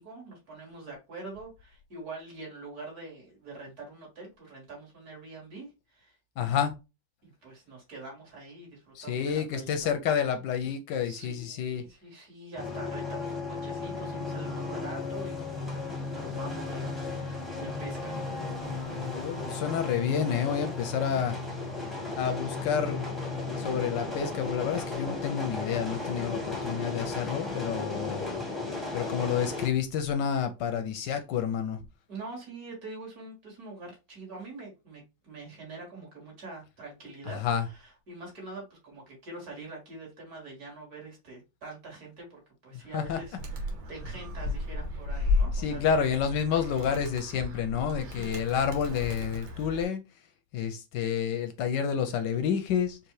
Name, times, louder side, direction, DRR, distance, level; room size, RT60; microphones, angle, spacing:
voice 1, 0.0-6.2 7.2-9.9 11.0-15.7 16.0-18.5 20.8-20.9 32.1-46.2 48.0-48.6, right 3 dB, 45° right, -2 dB, 2.6 m, -45 dB
voice 2, 6.4-6.7 8.9-11.8 19.0-21.4 22.2-23.0 23.6-28.3 28.9-31.8 37.4-37.6 42.9-43.2 45.5-50.0 50.5-53.0, left 7 dB, 75° left, 7 dB, 1.1 m, -29 dB
sound 1, 12.6-29.7, left 3 dB, ahead, 0.7 m, -35 dB
Animal, 43.4-49.8, left 3 dB, 80° right, 1.9 m, -33 dB
4.9 x 2.7 x 3.1 m, 0.27 s
omnidirectional pair, 2.2 m